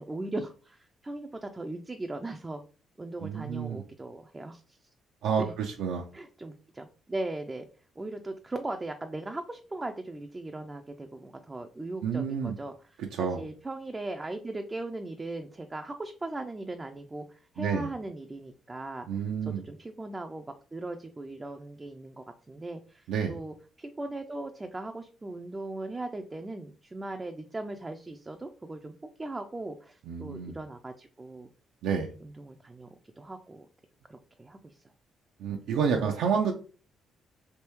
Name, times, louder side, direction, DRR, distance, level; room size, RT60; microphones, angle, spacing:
voice 1, 0.0-2.6 3.0-4.8 5.4-5.5 6.1-7.7 8.0-12.7 13.2-20.5 20.7-31.5 32.2-32.9 33.2-33.7 34.1-34.8 35.8-35.9, right 2 dB, 20° right, 5 dB, 0.3 m, -38 dB
voice 2, 3.2-3.8 5.2-6.0 12.0-12.5 13.0-13.4 17.6-17.9 19.1-19.6 23.1-23.4 30.1-30.6 31.8-32.1 35.4-36.5, right 6 dB, 85° right, 2 dB, 0.4 m, -29 dB
3.4 x 2.7 x 2.9 m, 0.38 s
cardioid pair, 90°, 0 cm